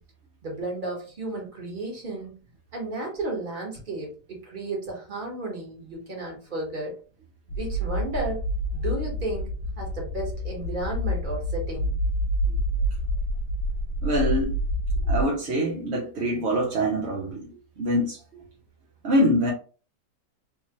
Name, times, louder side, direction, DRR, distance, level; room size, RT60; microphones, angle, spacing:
voice 1, 0.4-2.3 2.7-6.9 7.5-8.4 8.7-9.5 9.8-11.9, right 2 dB, 30° right, 1.2 m, -33 dB
sound 1, 7.5-15.2, equal, 65° left, 1.3 m, -27 dB
voice 2, 14.0-14.5 15.1-17.5 17.8-18.2 19.0-19.5, equal, 60° right, 0.7 m, -24 dB
3.6 x 2.8 x 2.9 m
omnidirectional pair, 1.9 m